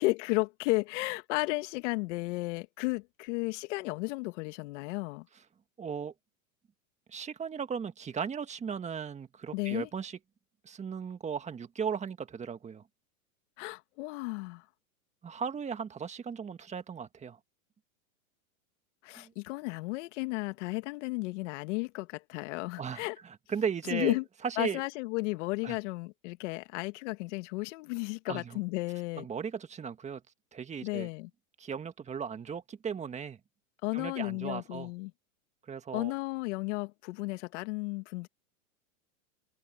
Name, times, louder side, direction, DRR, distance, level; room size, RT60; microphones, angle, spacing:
voice 1, 0.0-5.3 9.5-9.9 13.6-14.6 19.0-23.2 23.9-24.2 24.6-29.3 30.8-31.3 33.8-35.1 35.9-38.3, left 24 dB, 55° left, 2.0 m, -33 dB
voice 2, 5.8-6.1 7.1-10.2 10.6-12.8 15.2-17.4 19.2-19.3 22.8-24.2 24.4-24.8 25.6-25.8 28.3-28.6 29.2-30.2 30.5-31.1 31.6-33.4 33.9-34.9 35.7-36.1, right 6 dB, 15° right, 1.6 m, -36 dB
hypercardioid pair, 130°, 43 cm